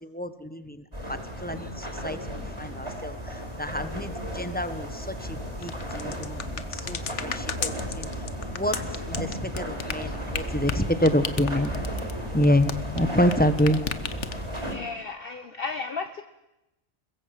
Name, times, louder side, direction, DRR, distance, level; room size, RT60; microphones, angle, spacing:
voice 1, 0.0-7.7 8.0-8.1 8.5-8.8 9.1-11.7 12.3-13.8, equal, 10° left, 10 dB, 1.3 m, -27 dB
sound 1, 0.9-14.8, equal, 25° right, 4.9 m, -34 dB
sound 2, 5.6-13.3 13.6-14.6, left 7 dB, 75° left, 1.4 m, -33 dB
voice 2, 14.5-16.2, left 4 dB, 50° left, 8 dB, 1.2 m, -34 dB
22.0 x 21.0 x 7.8 m, 0.93 s
omnidirectional pair, 1.2 m